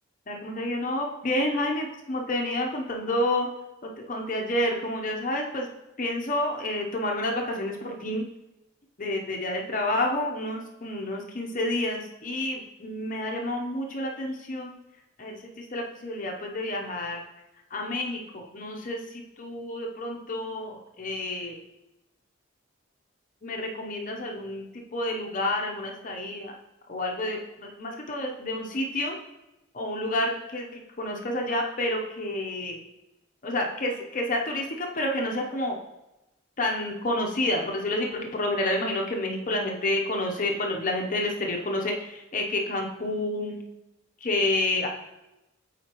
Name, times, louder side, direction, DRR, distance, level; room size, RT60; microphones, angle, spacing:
voice 1, 0.3-3.5 3.8-5.7 6.0-8.3 9.0-14.8 15.2-17.2 17.7-21.6 23.4-26.6 26.9-29.2 29.7-32.8 33.4-35.8 36.6-43.6 44.2-44.9, left 1 dB, 40° left, 1 dB, 0.7 m, -29 dB
7.8 x 4.4 x 2.9 m, 0.95 s
head